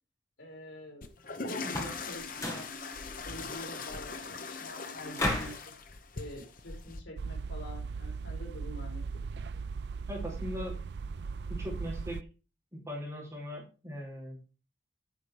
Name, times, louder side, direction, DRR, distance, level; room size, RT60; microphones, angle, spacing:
voice 1, 0.4-1.1 1.4-2.7 3.2-5.7 6.2-9.2, left 1 dB, 85° left, 1 dB, 4.2 m, -46 dB
sound 1, 1.0-7.0, left 4 dB, 45° left, 0.9 m, -40 dB
sound 2, 1.6-2.0 2.3-2.7 5.2-5.6, left 1 dB, 15° left, 1.8 m, -33 dB
sound 3, 7.2-12.2, right 4 dB, 60° right, 0.4 m, -38 dB
voice 2, 10.1-10.8 11.5-12.2 12.7-14.4, equal, 15° right, -5 dB, 4.5 m, -39 dB
9.9 x 6.4 x 5.0 m, 0.34 s
head